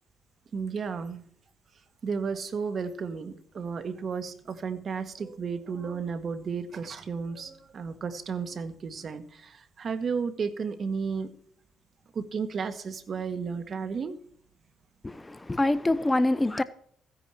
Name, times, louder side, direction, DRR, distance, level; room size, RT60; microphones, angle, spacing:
voice 1, 0.5-1.3 2.0-11.3 12.1-14.1, right 5 dB, 50° right, 1.7 m, -33 dB
voice 2, 15.0-16.6, left 2 dB, 15° left, 0.8 m, -25 dB
15.5 x 10.5 x 4.5 m
cardioid pair, 90°, 0 cm